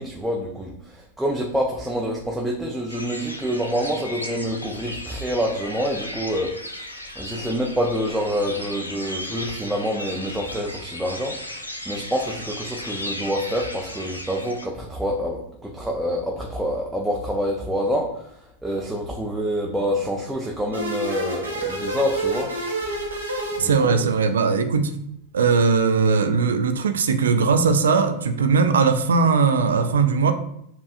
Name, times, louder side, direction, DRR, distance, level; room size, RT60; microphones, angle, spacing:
voice 1, 0.0-22.5 23.6-24.1, equal, 5° right, -2 dB, 0.5 m, -27 dB
sound 1, 2.9-14.7, left 1 dB, 80° left, 0.5 m, -36 dB
sound 2, 20.7-24.3, right 2 dB, 80° right, 1.2 m, -28 dB
voice 2, 23.6-25.0 25.3-30.3, right 5 dB, 65° right, 8 dB, 0.4 m, -19 dB
7.1 x 2.4 x 2.4 m, 0.74 s
figure-of-eight pair, 90°, 0 cm